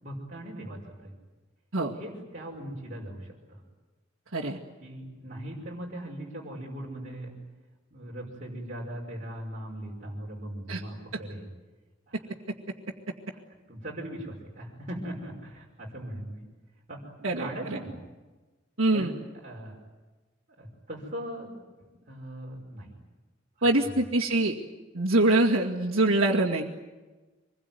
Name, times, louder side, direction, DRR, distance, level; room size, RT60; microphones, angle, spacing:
voice 1, 0.0-1.1 1.9-3.6 4.8-7.4 7.9-11.5 12.1-12.2 13.3-13.4 13.7-16.4 16.9-18.0 18.9-19.1 19.4-19.8 20.6-21.5 22.1-22.9, right 1 dB, 40° right, -3 dB, 5.7 m, -39 dB
voice 2, 17.2-17.8 18.8-19.1 23.6-24.5 24.9-26.6, right 2 dB, 75° right, -5 dB, 2.4 m, -24 dB
26.0 x 22.0 x 9.4 m, 1.2 s
head